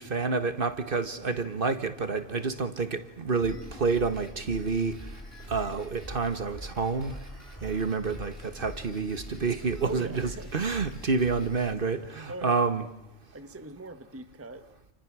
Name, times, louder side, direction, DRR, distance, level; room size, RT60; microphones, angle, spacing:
voice 1, 0.0-5.0 5.5-7.1 7.6-12.8, right 4 dB, 45° right, 11 dB, 1.4 m, -29 dB
Drum kit, 3.4-11.7, equal, 10° left, 5.7 m, -43 dB
voice 2, 9.8-10.5 12.3-12.6 13.3-14.7, right 2 dB, 10° right, 10 dB, 1.0 m, -40 dB
29.0 x 28.5 x 6.2 m, 0.82 s
omnidirectional pair, 1.3 m